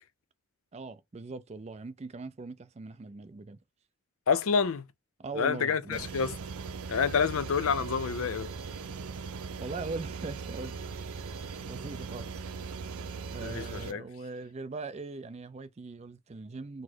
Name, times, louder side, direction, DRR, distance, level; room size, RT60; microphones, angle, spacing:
voice 1, 0.7-3.6 5.2-6.1 9.6-10.7 11.7-12.7 13.3-16.8, right 3 dB, 30° right, 0.4 m, -40 dB
voice 2, 4.3-4.9 5.4-6.3 6.9-8.5 13.4-14.0, left 6 dB, 70° left, 0.5 m, -28 dB
sound 1, 5.9-13.9, right 5 dB, 80° right, 0.6 m, -39 dB
4.1 x 2.1 x 4.4 m
head